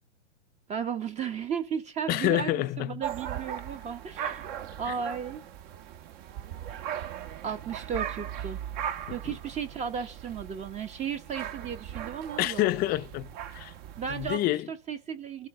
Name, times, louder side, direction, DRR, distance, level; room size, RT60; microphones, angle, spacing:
voice 1, 0.7-4.5 4.8-5.4 7.4-8.6 9.1-12.7 14.0-15.5, right 7 dB, 20° right, 1.2 m, -35 dB
voice 2, 2.1-3.0 4.9-5.0 12.4-13.7 14.1-14.7, left 16 dB, 25° left, 0.8 m, -28 dB
sound 1, 3.0-14.4, right 10 dB, 45° right, 1.7 m, -38 dB
29.0 x 12.0 x 3.8 m
hypercardioid pair, 130°, 35 cm